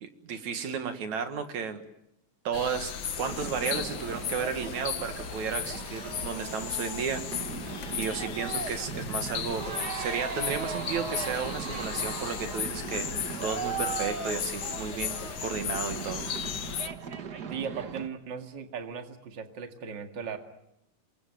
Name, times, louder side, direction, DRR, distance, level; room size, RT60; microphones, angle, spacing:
voice 1, 0.0-1.8 2.4-2.9 3.2-7.4 7.9-9.6 9.9-13.1 13.4-15.2 15.4-16.3, right 6 dB, 60° right, 8 dB, 2.9 m, -33 dB
sound 1, 2.5-16.9, left 8 dB, 70° left, 1.1 m, -36 dB
sound 2, 3.2-18.1, right 6 dB, 75° right, 0.9 m, -38 dB
voice 2, 17.5-20.4, right 6 dB, 35° right, 6 dB, 2.3 m, -37 dB
27.5 x 22.0 x 9.3 m, 0.82 s
omnidirectional pair, 3.9 m